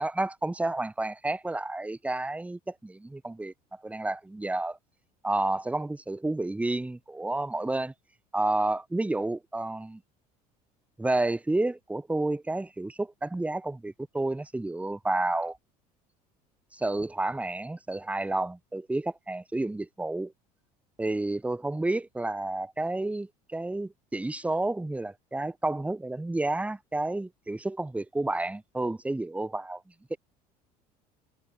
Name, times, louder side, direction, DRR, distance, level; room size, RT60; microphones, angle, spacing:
voice 1, 0.0-4.8 5.2-7.9 8.3-10.0 11.0-15.6 16.7-20.3 21.0-29.8 30.1-30.2, right 2 dB, 5° right, 0.8 m, -30 dB
figure-of-eight pair, 65°, 20 cm